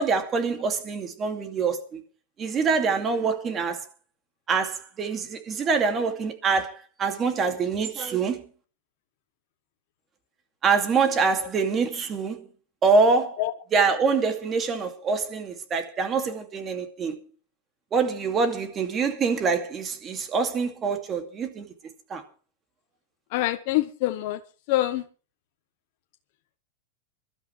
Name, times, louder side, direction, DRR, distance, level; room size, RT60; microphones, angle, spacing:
voice 1, 0.0-2.0 2.4-3.8 4.5-8.4 10.6-12.4 12.8-13.4 13.7-17.2 17.9-21.7 22.1-22.2, right 4 dB, 25° right, 2.5 m, -25 dB
voice 2, 23.3-24.4 24.7-25.0, left 16 dB, 55° left, 1.1 m, -25 dB
24.5 x 12.5 x 3.3 m
supercardioid pair, 135°, 0 cm